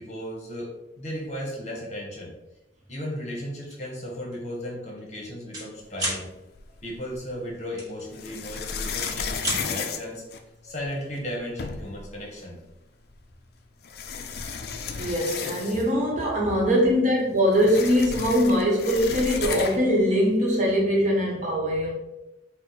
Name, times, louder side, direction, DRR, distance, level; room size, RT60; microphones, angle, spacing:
voice 1, 0.0-2.3 2.9-6.3 6.8-10.2 10.6-12.6, equal, 35° left, -2 dB, 1.0 m, -35 dB
sound 1, 3.6-3.9 4.3-4.5 4.8-5.7 5.9-6.2 7.8-8.6 8.9-9.6, right 1 dB, 20° right, 1.3 m, -31 dB
sound 2, 6.5-7.3 8.1-10.9 11.3-11.4 11.6-12.1 13.1-13.2 13.8-16.0 16.4-16.5 16.7-20.0, left 5 dB, 55° left, 0.4 m, -33 dB
voice 2, 15.0-21.9, equal, 40° right, -3 dB, 1.0 m, -22 dB
4.5 x 2.1 x 4.1 m, 0.95 s
head